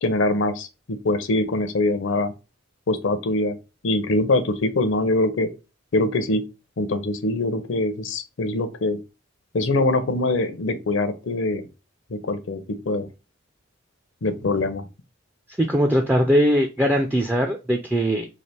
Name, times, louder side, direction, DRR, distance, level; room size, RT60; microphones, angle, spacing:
voice 1, 0.0-2.3 2.9-3.6 3.8-5.5 5.9-6.4 6.8-9.0 9.5-11.6 12.1-13.1 14.2-14.8, left 2 dB, 65° left, 0.6 m, -23 dB
voice 2, 15.6-18.3, equal, 10° right, 0.3 m, -20 dB
3.2 x 2.5 x 4.2 m
head